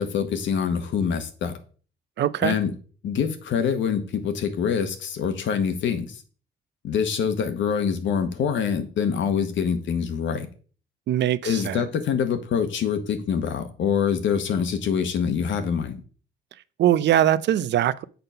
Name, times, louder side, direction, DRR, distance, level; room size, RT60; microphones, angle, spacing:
voice 1, 0.0-1.6 2.4-2.7 3.0-6.2 6.8-10.5 11.4-16.0, left 7 dB, 70° left, 1.1 m, -25 dB
voice 2, 2.2-2.6 11.1-11.8 16.8-18.0, right 11 dB, 60° right, 0.5 m, -21 dB
6.9 x 3.8 x 5.6 m
cardioid pair, 90°, 20 cm